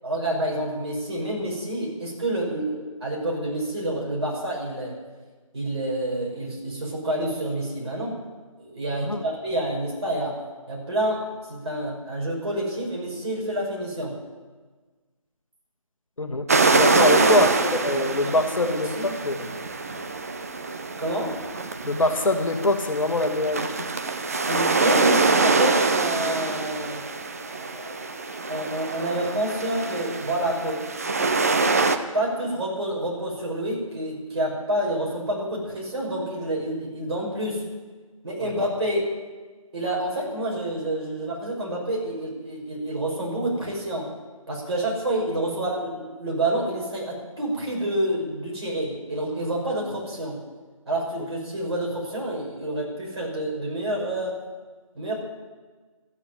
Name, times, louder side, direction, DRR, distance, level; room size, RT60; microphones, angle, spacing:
voice 1, 0.0-5.0 5.5-8.2 8.6-10.4 10.7-11.2 11.5-14.1 17.1-17.5 18.9-19.1 21.0-21.3 24.5-27.0 27.5-28.0 28.5-30.8 32.1-37.6 38.2-39.1 39.7-44.1 44.5-50.4 50.9-54.4 54.9-55.1, right 1 dB, 50° right, -3 dB, 6.0 m, -28 dB
voice 2, 16.2-19.5 21.8-23.8 38.4-38.5, left 2 dB, 65° left, 5 dB, 1.6 m, -24 dB
sound 1, 16.5-32.0, right 3 dB, 25° right, 0.7 m, -24 dB
13.5 x 9.2 x 9.6 m, 1.4 s
figure-of-eight pair, 160°, 18 cm